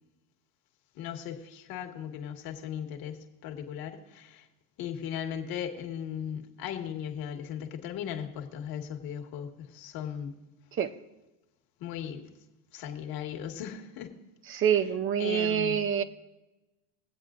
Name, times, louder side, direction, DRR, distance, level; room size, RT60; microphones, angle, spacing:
voice 1, 1.0-4.5 4.8-10.3 11.8-12.3 12.7-14.1 15.2-15.8, left 9 dB, 50° left, 1.6 m, -37 dB
voice 2, 14.5-16.0, right 8 dB, 30° right, 0.6 m, -26 dB
23.0 x 8.0 x 2.5 m
supercardioid pair, 105°, 44 cm